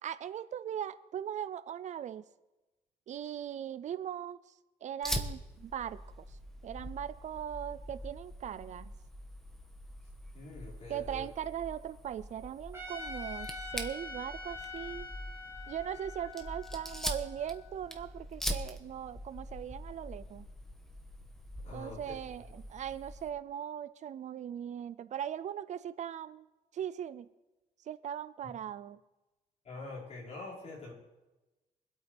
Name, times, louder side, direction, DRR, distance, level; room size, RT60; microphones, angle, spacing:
voice 1, 0.0-2.2 3.1-4.4 4.8-6.4 6.6-8.9 10.9-15.1 15.7-20.4 21.7-26.4 26.7-27.3 27.8-29.0, right 10 dB, 50° right, 14 dB, 0.5 m, -39 dB
Fire, 5.0-23.3, equal, 5° left, 1.3 m, -43 dB
voice 2, 10.3-11.3 21.6-22.2 28.4-28.5 29.6-30.9, left 2 dB, 45° left, -6 dB, 5.5 m, -45 dB
Trumpet, 12.7-17.9, left 3 dB, 15° right, 2.2 m, -45 dB
24.5 x 8.4 x 3.5 m, 1.1 s
cardioid pair, 130°, 16 cm